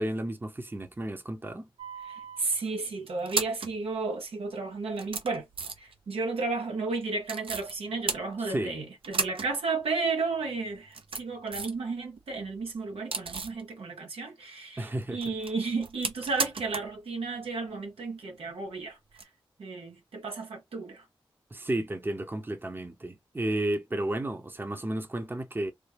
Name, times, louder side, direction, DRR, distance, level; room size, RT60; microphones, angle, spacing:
voice 1, 0.0-1.7 8.5-8.8 14.8-15.2 21.5-25.7, right 1 dB, 20° right, 0.7 m, -32 dB
sound 1, 1.8-2.4 3.1-3.8 4.5-4.6 4.9-6.0 7.2-7.7 8.1-8.7 9.0-9.5 9.8-9.9 10.7-11.8 12.2-13.6 15.0-17.0 17.2-17.3 19.1-19.2, right 4 dB, 70° right, 0.6 m, -35 dB
voice 2, 2.0-5.4 5.8-19.0 19.6-21.0, right 4 dB, 90° right, 0.9 m, -33 dB
3.2 x 2.2 x 3.3 m
cardioid pair, 45°, 10 cm